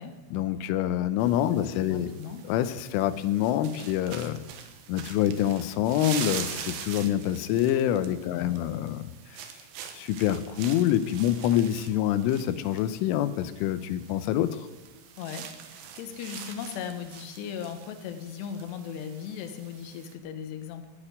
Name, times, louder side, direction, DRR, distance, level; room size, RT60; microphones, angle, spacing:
voice 1, 0.3-2.1 2.4-4.4 4.9-9.0 9.9-14.7, left 11 dB, 90° left, 12 dB, 3.2 m, -26 dB
sound 1, 1.2-20.1, right 8 dB, 70° right, 3.0 m, -43 dB
voice 2, 1.9-2.4 8.3-8.7 15.2-20.9, left 8 dB, 70° left, 7 dB, 3.1 m, -38 dB
13.0 x 8.8 x 9.9 m, 1.1 s
omnidirectional pair, 5.5 m